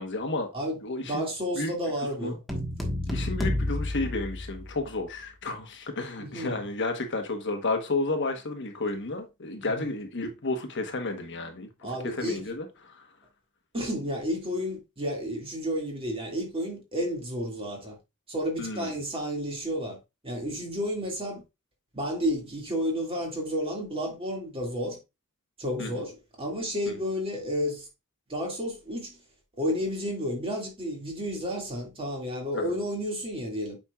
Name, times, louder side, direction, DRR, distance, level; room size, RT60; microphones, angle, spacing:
voice 1, 0.0-0.5 0.8-1.2 1.6-1.7 2.2-2.3 3.1-11.7 12.0-13.1 18.6-18.9 25.8-25.9 26.9-27.0 32.5-32.7, left 2 dB, 55° left, 1.2 m, -32 dB
voice 2, 0.5-2.4 6.2-6.6 9.6-9.9 11.8-12.5 13.7-18.0 18.3-20.0 20.2-21.4 21.9-25.0 25.6-27.9 28.3-29.2 29.6-33.8, equal, 25° right, 2.2 m, -31 dB
sound 1, 2.5-5.0, left 1 dB, ahead, 1.3 m, -30 dB
8.5 x 5.3 x 2.4 m
head